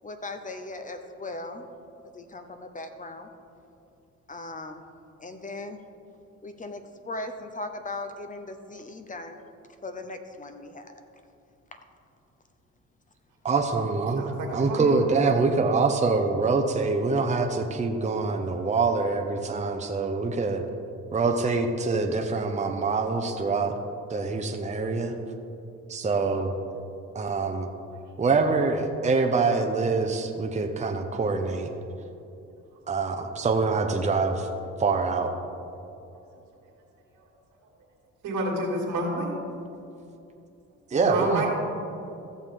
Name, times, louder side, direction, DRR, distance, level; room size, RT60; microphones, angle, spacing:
voice 1, 0.0-1.6 2.1-3.3 4.3-4.8 5.2-5.8 6.4-6.8 7.1-9.4 9.8-10.9, left 2 dB, 25° left, 7 dB, 0.8 m, -38 dB
voice 2, 13.4-14.2 14.5-20.6 21.1-23.7 24.1-25.1 25.9-26.5 27.1-27.7 28.2-31.7 32.9-34.5 34.8-35.3 40.9-41.4, right 4 dB, 25° right, 4 dB, 0.8 m, -25 dB
voice 3, 14.2-15.0 38.2-39.3 40.9-41.5, right 1 dB, 85° right, -2 dB, 2.4 m, -29 dB
14.5 x 6.7 x 3.8 m, 2.7 s
cardioid pair, 90°, 30 cm